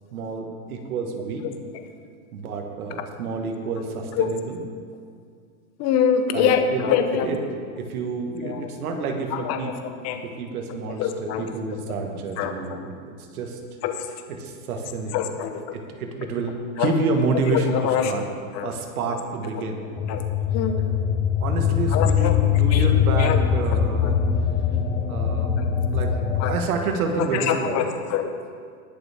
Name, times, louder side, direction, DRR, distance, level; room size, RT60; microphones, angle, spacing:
voice 1, 0.1-1.4 2.3-4.6 6.3-6.8 7.2-7.4 7.8-9.7 10.4-13.6 14.4-15.3 15.7-17.7 18.0-18.2 18.6-19.9 21.4-24.2 25.1-25.5 25.9-26.1 26.4-27.8, right 4 dB, 90° right, 3 dB, 1.8 m, -28 dB
voice 2, 5.8-7.3 8.4-8.7 9.3-10.2 11.0-11.5 12.4-12.8 13.8-14.1 15.1-15.8 16.8-17.0 17.5-18.1 18.5-18.7 19.5-19.6 20.1-20.2 20.5-20.8 21.9-22.3 22.7-23.4 24.0-24.1 25.6-25.7 26.4-26.5 27.3-28.3, left 8 dB, 35° left, 7 dB, 1.1 m, -25 dB
sound 1, 20.0-26.5, left 8 dB, 15° left, 0.5 m, -22 dB
20.0 x 6.9 x 3.6 m, 2.1 s
supercardioid pair, 135°, 42 cm